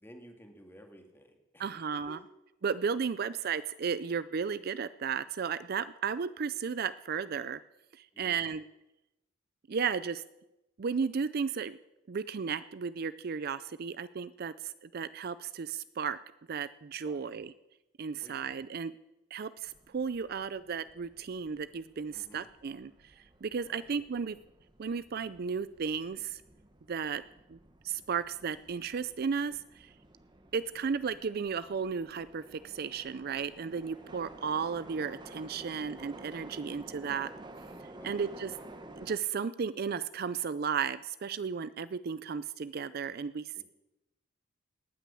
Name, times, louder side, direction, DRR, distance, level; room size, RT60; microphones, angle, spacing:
voice 1, 0.0-2.3 8.1-8.4 17.0-17.4 18.2-18.4 22.1-22.4 23.7-23.9 38.0-38.3 43.5-43.6, equal, 10° left, 5 dB, 1.9 m, -54 dB
voice 2, 1.6-2.2 2.6-7.6 7.9-8.6 9.7-10.2 10.8-11.8 12.1-16.2 16.5-17.5 18.0-18.9 19.3-24.4 24.8-26.4 26.9-27.2 27.5-27.6 27.8-29.9 30.5-37.3 38.0-38.5 39.0-43.6, right 6 dB, 50° right, 16 dB, 0.4 m, -34 dB
sound 1, 19.6-39.2, right 1 dB, 20° right, 1.2 m, -52 dB
18.5 x 9.2 x 6.9 m, 0.94 s
head